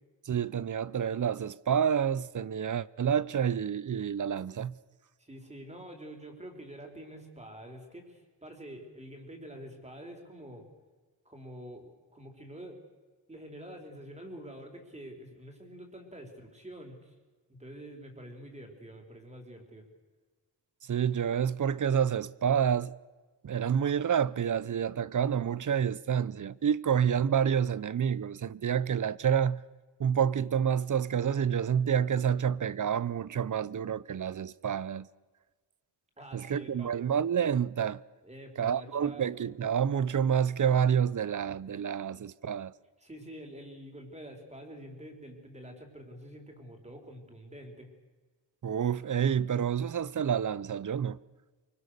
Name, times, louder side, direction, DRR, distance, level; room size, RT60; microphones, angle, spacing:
voice 1, 0.2-4.8 20.9-22.9 23.4-29.6 30.0-35.1 36.3-38.0 38.6-42.7 48.6-51.2, right 8 dB, 45° right, 0.7 m, -28 dB
voice 2, 5.2-10.7 11.2-12.8 13.3-17.1 17.5-19.9 36.2-36.9 38.2-39.3 43.0-47.9, right 1 dB, 15° right, 4.5 m, -47 dB
24.5 x 24.5 x 6.7 m
wide cardioid pair, 120°, 42 cm